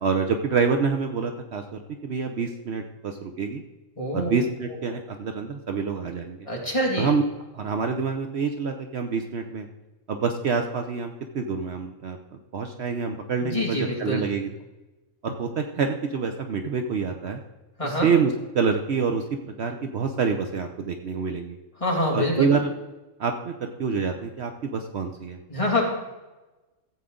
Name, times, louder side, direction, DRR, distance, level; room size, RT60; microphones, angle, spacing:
voice 1, 0.0-3.6 4.1-6.5 7.0-7.2 7.5-9.7 10.1-14.5 15.2-17.4 17.8-21.6 22.1-22.7 23.2-25.4, right 5 dB, 60° right, 5 dB, 0.9 m, -27 dB
voice 2, 4.0-4.3 6.5-7.1 13.4-14.3 17.8-18.1 21.8-22.6 25.5-25.8, left 1 dB, 25° left, -2 dB, 2.4 m, -25 dB
14.5 x 8.2 x 3.8 m, 1.1 s
omnidirectional pair, 1.4 m